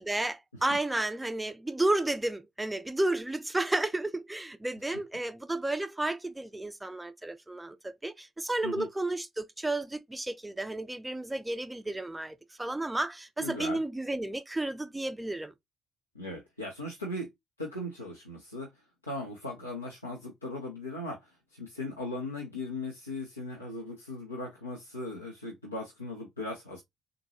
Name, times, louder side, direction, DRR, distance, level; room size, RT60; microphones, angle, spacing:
voice 1, 0.0-15.5, right 2 dB, 10° right, 0.4 m, -32 dB
voice 2, 13.4-13.8 16.1-17.3 17.6-18.7 19.0-26.8, left 2 dB, 85° left, 0.5 m, -38 dB
3.7 x 2.2 x 2.7 m
figure-of-eight pair, 50°, 0 cm